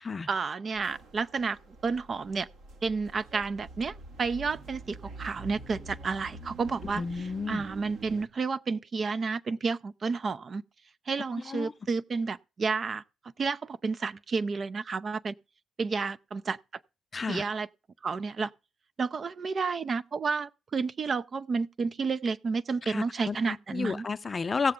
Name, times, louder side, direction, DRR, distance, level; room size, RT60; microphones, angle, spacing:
voice 1, 0.3-2.5 2.8-7.0 7.5-10.6 11.1-13.0 13.4-15.3 15.8-16.6 17.3-17.7 18.0-18.5 19.0-24.1, right 4 dB, 45° right, 0.5 m, -31 dB
sound 1, 0.7-8.3, right 3 dB, 80° right, 1.9 m, -46 dB
voice 2, 7.0-7.6 11.5-11.7 17.1-17.4 22.8-24.7, left 4 dB, 35° left, 0.6 m, -32 dB
17.0 x 6.7 x 3.7 m
supercardioid pair, 70°, 0 cm